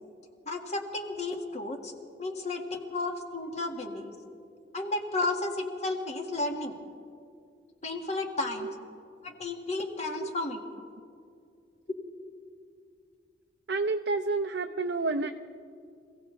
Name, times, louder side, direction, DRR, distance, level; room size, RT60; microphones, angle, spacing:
voice 1, 0.4-1.9 2.2-4.1 4.7-6.8 7.8-8.7 9.2-10.6, left 2 dB, 40° left, 2 dB, 1.7 m, -33 dB
voice 2, 13.7-15.3, right 3 dB, 70° right, 5 dB, 0.5 m, -29 dB
26.5 x 16.5 x 3.3 m, 2.3 s
head